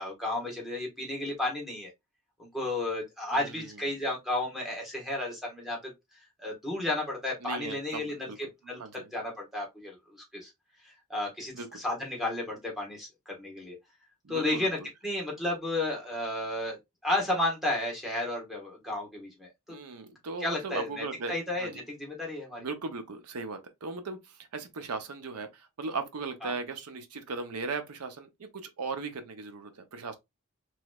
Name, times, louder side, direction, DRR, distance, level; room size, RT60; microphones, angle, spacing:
voice 1, 0.0-1.9 2.4-5.9 6.4-8.3 8.6-8.8 9.1-10.5 10.8-13.8 14.3-14.8 15.0-16.8 17.0-19.8 20.4-22.7 26.4-26.5, left 2 dB, ahead, 1.1 m, -33 dB
voice 2, 3.3-3.8 7.4-8.4 8.8-9.1 11.5-11.8 14.2-14.9 19.7-21.7 22.6-30.2, right 4 dB, 85° right, 0.6 m, -38 dB
3.1 x 2.9 x 2.2 m
head